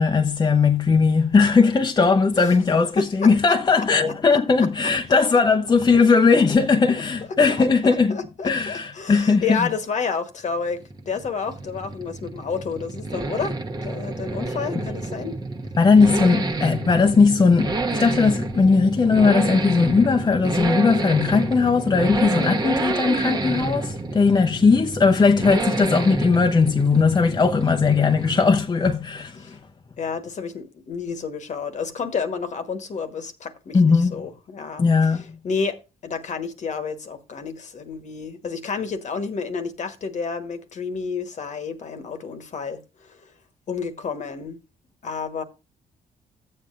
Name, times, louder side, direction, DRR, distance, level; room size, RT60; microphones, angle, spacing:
voice 1, 0.0-8.2 8.4-9.7 15.8-29.6 33.7-34.1 34.8-35.4, left 4 dB, 30° left, 0.7 m, -18 dB
voice 2, 3.0-3.3 3.8-3.9 6.9-7.0 7.5-10.8 11.0-13.6 13.8-15.4 29.4-29.6 30.0-34.8 35.1-43.3 43.7-44.6 45.0-45.4, left 5 dB, 55° left, 1.3 m, -30 dB
Accelerating revving vroom, 10.5-28.7 28.9-29.0, right 3 dB, 25° right, 1.1 m, -29 dB
13.5 x 7.7 x 2.5 m
cardioid pair, 70°, 15 cm